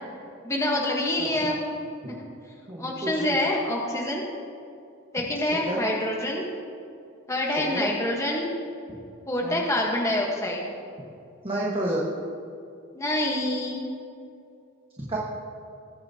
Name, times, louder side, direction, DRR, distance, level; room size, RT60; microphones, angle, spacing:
voice 1, 0.4-2.3 2.8-4.2 5.1-6.5 7.3-8.6 9.3-10.7 12.9-13.9, left 1 dB, 15° left, -2 dB, 1.2 m, -27 dB
voice 2, 1.2-1.5 2.7-3.4 5.6-5.8 7.7-7.9 9.4-9.6 11.4-12.1 15.0-15.2, right 1 dB, 25° right, -4 dB, 1.3 m, -30 dB
20.5 x 8.9 x 2.8 m, 2.5 s
head